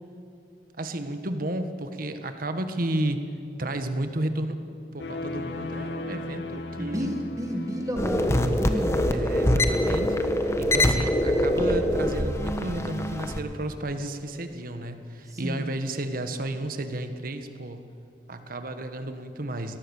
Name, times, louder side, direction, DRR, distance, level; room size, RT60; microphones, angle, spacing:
voice 1, 0.8-3.2 3.6-4.6 4.9-7.1 8.7-10.2 10.6-17.9 18.3-19.8, right 1 dB, 55° right, 8 dB, 1.5 m, -32 dB
sound 1, 5.0-9.0, left 2 dB, 90° left, 1.8 m, -37 dB
voice 2, 6.8-9.1 15.3-15.7, equal, 20° right, 3 dB, 1.7 m, -31 dB
sound 2, 8.0-13.4, left 1 dB, 15° left, 1.2 m, -24 dB
22.0 x 18.0 x 7.2 m, 2.7 s
head